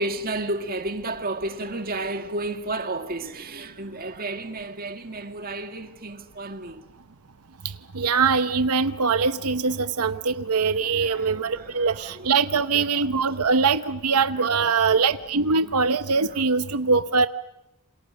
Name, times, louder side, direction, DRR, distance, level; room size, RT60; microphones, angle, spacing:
voice 1, 0.0-6.9 10.2-10.3 10.7-12.3 12.7-12.8 13.3-13.4 14.3-15.1 15.5-15.7 16.3-16.4, right 2 dB, 40° right, 2.0 m, -32 dB
voice 2, 7.6-17.3, right 5 dB, 85° right, 0.9 m, -22 dB
28.5 x 27.5 x 6.5 m
head